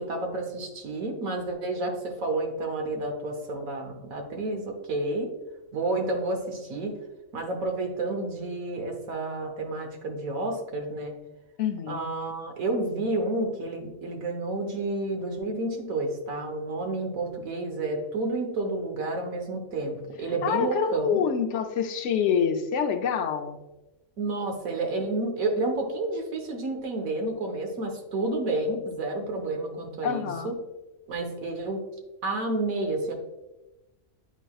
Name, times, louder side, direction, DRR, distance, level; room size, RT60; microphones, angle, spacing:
voice 1, 0.0-5.3 5.7-6.9 7.3-11.1 11.9-21.2 24.2-30.5 31.1-31.8 32.2-33.1, right 2 dB, 85° right, 3 dB, 1.5 m, -30 dB
voice 2, 11.6-12.0 20.4-23.6 30.0-30.5, left 7 dB, 65° left, 6 dB, 0.9 m, -26 dB
10.0 x 4.0 x 2.3 m, 1.1 s
omnidirectional pair, 1.4 m